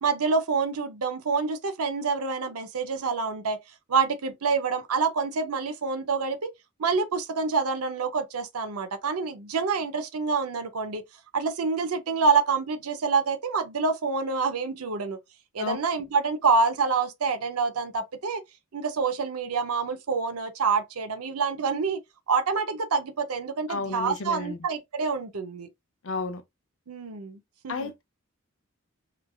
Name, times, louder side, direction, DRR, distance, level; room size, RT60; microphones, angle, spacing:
voice 1, 0.0-3.6 3.9-6.5 6.8-11.0 11.3-15.2 15.5-18.4 18.7-22.0 22.3-25.7 26.9-27.4 27.6-27.9, right 5 dB, 85° right, 0.6 m, -27 dB
voice 2, 23.7-24.6 26.0-26.4 27.7-28.0, left 3 dB, 60° left, 0.6 m, -32 dB
3.1 x 2.4 x 2.3 m
head